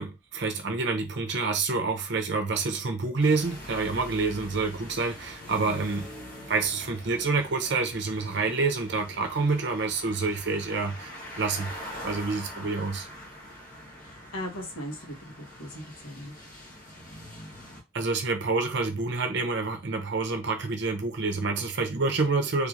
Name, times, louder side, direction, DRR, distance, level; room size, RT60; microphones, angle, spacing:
voice 1, 0.0-6.1 6.5-11.7 12.0-13.1 17.9-22.7, right 3 dB, 55° right, 0.6 m, -28 dB
sound 1, 3.2-17.8, equal, 40° left, 1.1 m, -44 dB
voice 2, 14.0-16.3, equal, 90° left, 1.3 m, -39 dB
3.3 x 3.1 x 2.5 m
head